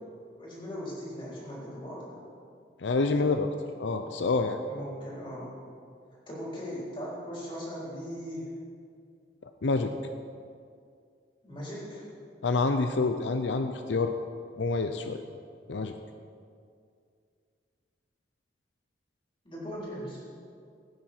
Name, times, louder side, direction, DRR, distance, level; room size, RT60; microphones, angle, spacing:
voice 1, 0.4-2.2 4.7-5.5 6.3-8.5 11.4-12.0 19.4-20.2, equal, 30° left, -6 dB, 3.9 m, -39 dB
voice 2, 2.8-3.5 3.8-4.6 9.6-9.9 12.4-14.1 14.6-15.2 15.7-15.9, left 3 dB, 80° left, 7 dB, 0.6 m, -27 dB
17.0 x 9.6 x 4.5 m, 2.3 s
head